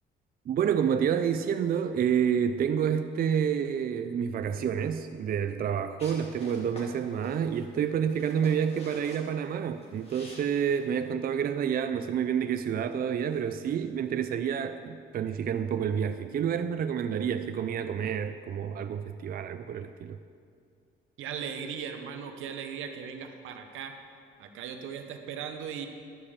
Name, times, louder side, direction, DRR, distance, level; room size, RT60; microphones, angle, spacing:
voice 1, 0.5-20.2, right 8 dB, 50° right, 0.4 m, -29 dB
sound 1, 6.0-11.0, left 1 dB, 30° left, 2.3 m, -49 dB
voice 2, 21.2-23.9 24.4-25.9, right 7 dB, 85° right, 0.9 m, -38 dB
11.0 x 4.9 x 7.1 m
cardioid pair, 90°, 20 cm